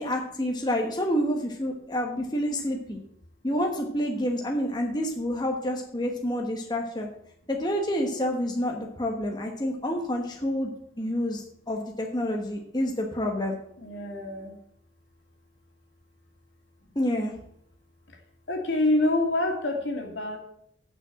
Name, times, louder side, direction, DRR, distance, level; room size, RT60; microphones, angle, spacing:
voice 1, 0.0-3.0 3.4-7.1 7.5-10.7 11.0-13.6 16.9-17.3, equal, 25° left, 1 dB, 1.2 m, -28 dB
voice 2, 13.8-14.5 18.5-20.4, left 2 dB, 80° left, 2 dB, 2.4 m, -26 dB
8.9 x 6.2 x 7.6 m, 0.70 s
head